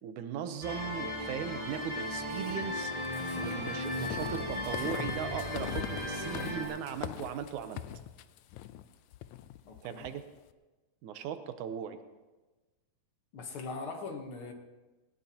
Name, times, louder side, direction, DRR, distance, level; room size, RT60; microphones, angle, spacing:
voice 1, 0.0-7.8 9.8-10.2 11.0-12.0, right 8 dB, 75° right, 9 dB, 2.2 m, -38 dB
sound 1, 0.6-6.7, left 1 dB, 10° left, 3.2 m, -36 dB
sound 2, 2.3-10.2, left 11 dB, 80° left, 1.7 m, -42 dB
voice 2, 9.6-10.1 13.3-14.5, left 4 dB, 60° left, 4 dB, 1.5 m, -41 dB
19.0 x 17.5 x 2.9 m, 1.2 s
omnidirectional pair, 3.7 m